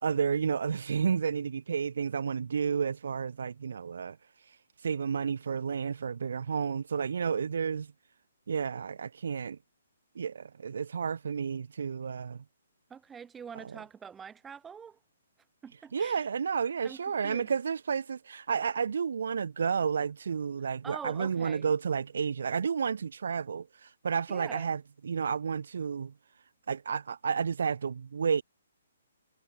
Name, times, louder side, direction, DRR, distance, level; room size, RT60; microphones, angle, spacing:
voice 1, 0.0-4.2 4.8-7.9 8.5-9.6 10.1-12.4 13.6-13.8 15.9-26.1 26.7-28.4, right 6 dB, 65° right, 2.9 m, -31 dB
voice 2, 12.9-15.0 15.6-16.2 16.8-17.5 20.8-21.7 24.3-24.7, right 7 dB, 5° right, 7.2 m, -45 dB
hypercardioid pair, 175°, 0 cm